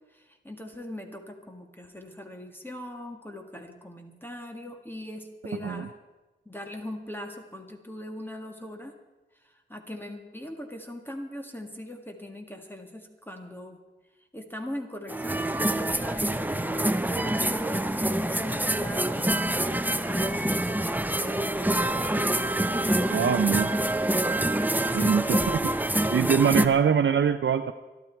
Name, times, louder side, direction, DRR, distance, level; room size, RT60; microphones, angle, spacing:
voice 1, 0.1-5.9 6.4-8.9 9.3-13.8 14.3-24.0 24.9-25.2, left 1 dB, 10° left, 3 dB, 1.7 m, -40 dB
sound 1, 15.1-26.7, right 1 dB, 10° right, 0.7 m, -26 dB
voice 2, 23.1-23.7 24.9-25.7 26.1-27.7, right 7 dB, 80° right, 8 dB, 0.6 m, -23 dB
22.0 x 12.5 x 4.5 m, 1.2 s
wide cardioid pair, 90°, 19 cm